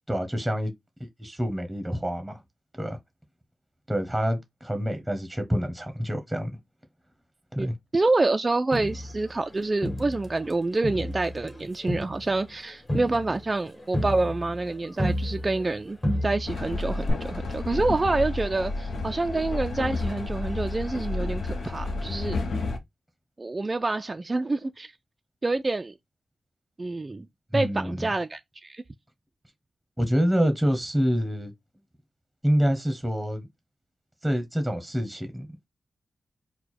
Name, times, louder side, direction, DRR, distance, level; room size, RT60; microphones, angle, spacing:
voice 1, 0.1-0.7 1.2-2.4 2.8-3.0 3.9-6.5 7.5-7.7 27.5-28.1 30.0-31.5 32.4-33.5 34.2-35.5, equal, 5° right, 0.9 m, -26 dB
voice 2, 7.9-22.4 23.4-24.9 25.4-25.9 26.8-27.3 27.5-28.8, right 2 dB, 30° right, 0.3 m, -27 dB
Crowd, 8.7-10.5 10.8-15.8 16.0-16.7 17.1-17.2, equal, 30° left, 1.7 m, -31 dB
Train, 16.5-22.8, left 2 dB, 80° left, 0.8 m, -31 dB
4.5 x 2.1 x 4.1 m
wide cardioid pair, 100°, 0 cm